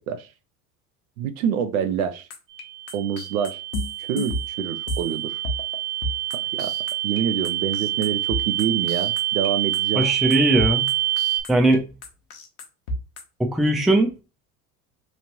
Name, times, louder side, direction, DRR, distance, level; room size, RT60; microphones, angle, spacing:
voice 1, 1.2-2.3 2.9-3.6 4.0-5.4 6.3-6.7 7.0-10.1, right 8 dB, 70° right, 0.6 m, -26 dB
sound 1, 2.3-5.1 5.4-5.8 6.0-7.2 7.4-9.5 9.7-11.8 12.0-13.2, left 1 dB, 75° left, 0.9 m, -31 dB
sound 2, 2.5-11.4, right 14 dB, 45° right, 0.8 m, -27 dB
voice 2, 10.0-10.8 11.5-11.8 13.4-14.1, right 1 dB, ahead, 0.4 m, -19 dB
3.1 x 2.5 x 2.9 m
hypercardioid pair, 75°, 44 cm